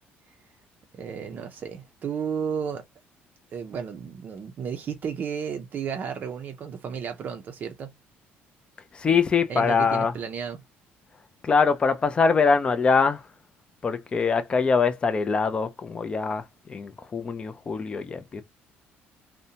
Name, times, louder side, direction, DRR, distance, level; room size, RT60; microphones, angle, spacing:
voice 1, 0.9-2.8 3.5-7.9 9.5-10.6, right 7 dB, 40° right, 0.5 m, -33 dB
voice 2, 8.9-10.1 11.4-13.2 13.8-18.4, left 5 dB, 25° left, 0.4 m, -23 dB
2.6 x 2.1 x 2.7 m
cardioid pair, 135°, 4 cm